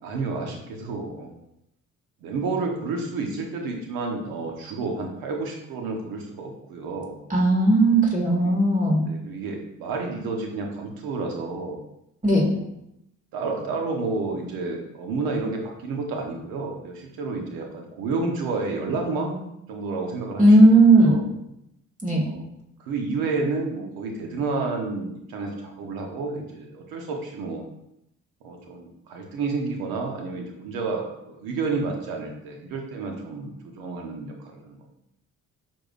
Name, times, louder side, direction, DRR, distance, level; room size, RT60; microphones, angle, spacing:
voice 1, 0.0-1.4 2.2-7.2 8.4-8.5 9.0-11.8 12.4-12.6 13.3-19.4 19.7-21.2 22.2-22.5 22.8-27.6 28.4-34.8, right 3 dB, 85° right, 2 dB, 1.2 m, -30 dB
voice 2, 7.3-9.1 12.2-12.4 20.4-21.2 22.0-22.2, right 2 dB, 25° right, -2 dB, 2.3 m, -16 dB
6.7 x 5.8 x 2.6 m, 0.81 s
supercardioid pair, 55°, 35 cm